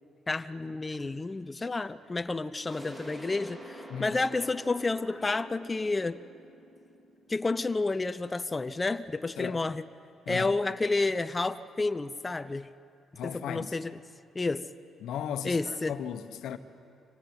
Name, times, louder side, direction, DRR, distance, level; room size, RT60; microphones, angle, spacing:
voice 1, 0.3-6.2 7.3-9.8 10.3-12.7 13.2-13.9 14.3-14.6 15.4-15.9, left 3 dB, 20° left, 0.7 m, -30 dB
sound 1, 2.7-8.2, equal, 25° right, 3.7 m, -47 dB
voice 2, 10.3-10.6 13.2-13.8 15.0-16.6, left 8 dB, 80° left, 1.1 m, -36 dB
25.0 x 17.0 x 9.6 m
cardioid pair, 90°, 0 cm